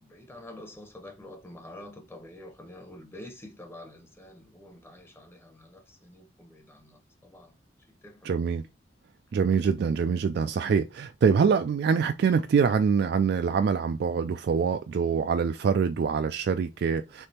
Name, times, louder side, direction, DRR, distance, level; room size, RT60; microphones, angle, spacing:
voice 1, 0.0-7.5 8.0-8.5, left 1 dB, 15° left, 0.8 m, -47 dB
voice 2, 8.2-8.6 9.3-17.3, right 6 dB, 60° right, 0.3 m, -25 dB
3.4 x 3.3 x 4.2 m
head